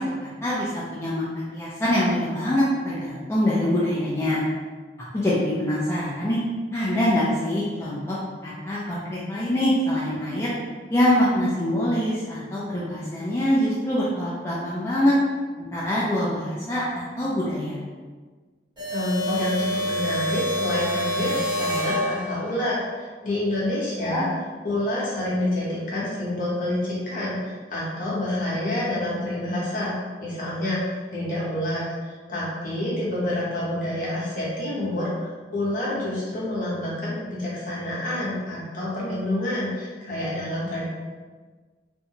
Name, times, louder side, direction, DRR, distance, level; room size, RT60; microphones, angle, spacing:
voice 1, 0.0-4.5 5.1-6.4 6.7-10.5 10.9-15.1 15.6-17.8 24.0-24.2, left 1 dB, 15° left, -8 dB, 0.4 m, -24 dB
sound 1, 18.8-22.7, equal, 25° right, 1.4 m, -27 dB
voice 2, 18.9-24.3 24.6-29.9 30.2-31.9 32.3-40.9, left 1 dB, 50° left, -7 dB, 1.0 m, -28 dB
2.6 x 2.2 x 2.8 m, 1.4 s
head